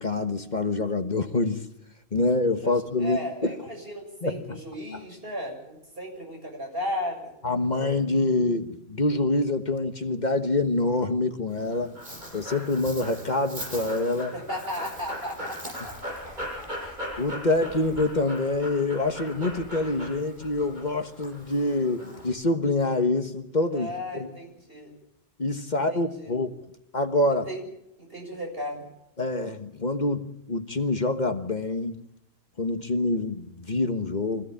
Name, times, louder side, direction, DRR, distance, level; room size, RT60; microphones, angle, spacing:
voice 1, 0.0-1.6 2.1-3.5 4.2-4.6 7.4-12.0 12.3-14.3 17.2-23.9 24.2-24.3 25.4-26.5 26.9-27.5 29.2-32.0 32.6-34.4, left 2 dB, 45° left, 7 dB, 1.5 m, -26 dB
voice 2, 2.6-7.3 14.3-16.0 23.7-24.9 25.7-26.3 27.5-27.6 28.0-28.9, left 1 dB, 65° right, 1 dB, 7.2 m, -35 dB
Dog, 11.5-22.3, equal, 45° right, 7.6 m, -39 dB
25.0 x 16.0 x 8.7 m, 0.83 s
omnidirectional pair, 1.1 m